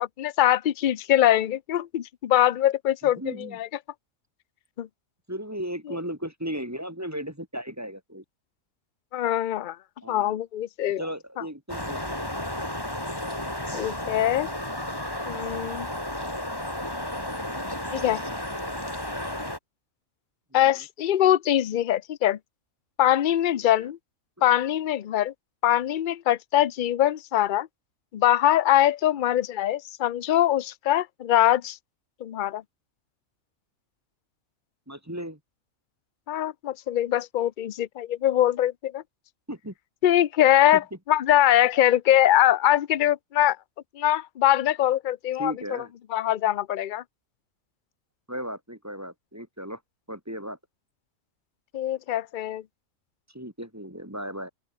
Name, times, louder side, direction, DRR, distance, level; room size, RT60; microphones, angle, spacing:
voice 1, 0.0-3.7 4.8-4.9 9.1-9.8 10.1-11.0 13.7-14.5 15.2-15.9 17.9-18.2 20.5-22.4 23.0-24.0 24.4-25.3 25.6-27.7 28.1-31.8 32.2-32.6 36.3-39.0 40.0-43.6 44.0-45.5 46.1-47.0 51.7-52.6, left 12 dB, 50° left, 0.6 m, -23 dB
voice 2, 3.0-3.6 5.3-8.2 10.0-10.4 11.0-12.1 20.5-20.8 23.6-23.9 34.9-35.4 39.5-39.7 40.7-40.8 45.4-45.9 48.3-49.8 50.1-50.6 53.3-54.5, equal, 10° right, 3.0 m, -36 dB
sound 1, 11.7-19.6, left 1 dB, 15° left, 4.4 m, -32 dB
open air
omnidirectional pair, 1.5 m